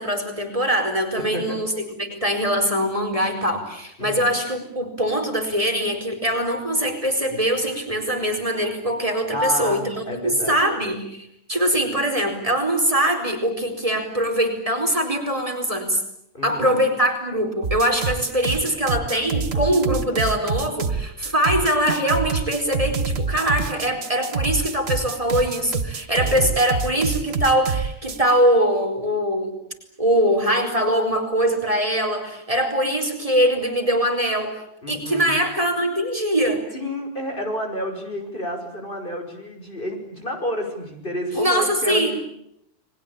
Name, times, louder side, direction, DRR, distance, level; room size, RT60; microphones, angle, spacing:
voice 1, 0.0-1.7 2.0-16.0 16.4-29.6 30.0-36.6 41.3-42.1, equal, 30° right, 4 dB, 4.7 m, -22 dB
voice 2, 1.2-1.6 4.0-4.2 9.3-10.5 16.3-16.7 26.2-26.6 34.8-35.4 36.7-42.1, equal, 45° left, 3 dB, 6.1 m, -30 dB
sound 1, 17.6-28.3, right 5 dB, 60° right, 1.5 m, -26 dB
30.0 x 21.5 x 8.8 m, 0.76 s
omnidirectional pair, 1.2 m